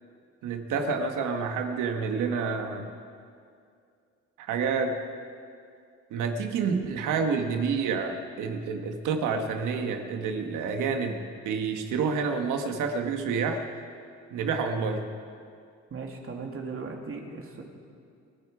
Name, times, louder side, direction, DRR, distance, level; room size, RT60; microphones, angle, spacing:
voice 1, 0.4-2.9 4.4-4.9 6.1-11.2 11.4-13.6 14.3-15.1, right 5 dB, 90° right, 5 dB, 1.5 m, -28 dB
voice 2, 15.9-17.6, right 4 dB, 45° right, 1 dB, 2.5 m, -37 dB
29.0 x 9.8 x 4.9 m, 2.4 s
cardioid pair, 90°, 30 cm